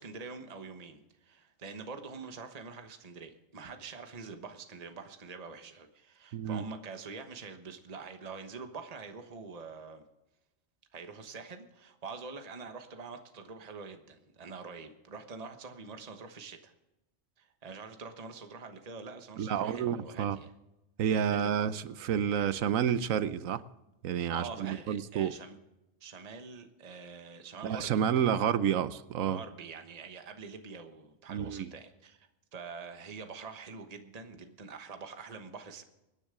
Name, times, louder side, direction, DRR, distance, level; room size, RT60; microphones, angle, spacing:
voice 1, 0.0-10.0 10.9-16.7 17.4-20.5 21.1-21.7 24.3-25.5 26.0-28.0 29.3-35.8, right 4 dB, 30° right, 1.2 m, -45 dB
voice 2, 6.3-6.6 19.4-20.4 21.0-23.6 24.0-25.3 27.6-29.4 31.3-31.7, right 8 dB, 80° right, 1.1 m, -30 dB
24.5 x 10.0 x 3.8 m
omnidirectional pair, 1.4 m